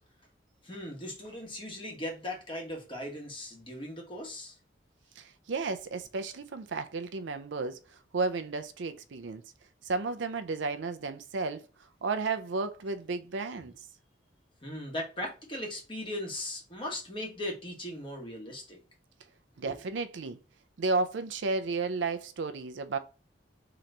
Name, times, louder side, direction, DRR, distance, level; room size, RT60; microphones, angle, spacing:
voice 1, 0.6-4.5 14.6-18.8 19.6-19.7, left 1 dB, 25° left, 1.1 m, -38 dB
voice 2, 5.2-7.8 8.1-9.4 9.8-11.7 12.0-13.7 19.6-20.4 20.8-23.0, right 3 dB, 80° right, 0.5 m, -33 dB
3.9 x 3.0 x 3.3 m
head